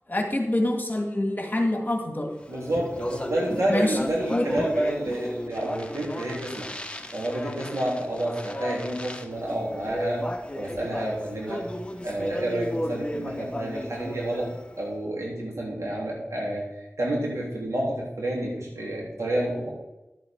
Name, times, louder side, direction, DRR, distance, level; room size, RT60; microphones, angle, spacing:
voice 1, 0.1-2.3 3.7-4.0 4.3-4.5, left 1 dB, 35° left, 3 dB, 2.0 m, -26 dB
Speech, 2.4-14.8, left 1 dB, 20° left, 1.1 m, -34 dB
voice 2, 2.5-6.7 7.1-10.3 10.5-11.7 12.0-14.5 14.8-16.7 17.0-19.7, right 1 dB, 75° right, -3 dB, 3.4 m, -29 dB
11.5 x 7.5 x 4.6 m, 0.98 s
wide cardioid pair, 45°, 5 cm